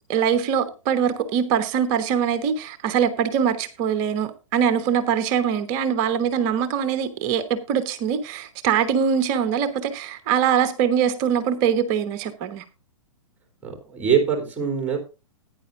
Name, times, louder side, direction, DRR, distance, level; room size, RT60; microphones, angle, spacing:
voice 1, 0.1-12.6, right 8 dB, 35° right, 1.0 m, -23 dB
voice 2, 13.6-15.0, right 7 dB, 10° right, 3.1 m, -23 dB
16.5 x 9.7 x 2.5 m
figure-of-eight pair, 110°, 17 cm